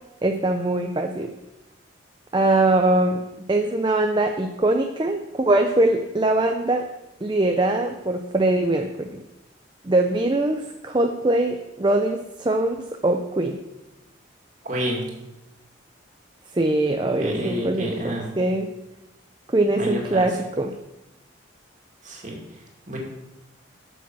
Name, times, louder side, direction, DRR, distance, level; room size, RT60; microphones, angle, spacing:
voice 1, 0.2-1.3 2.3-3.2 3.5-6.9 7.2-9.2 9.8-13.6 16.5-18.7 19.5-20.8, right 2 dB, 25° right, 4 dB, 0.5 m, -22 dB
voice 2, 14.6-15.1 17.2-18.3 19.7-20.2 22.0-22.3 22.9-23.0, equal, 40° right, -1 dB, 2.4 m, -28 dB
8.3 x 7.0 x 6.1 m, 0.97 s
head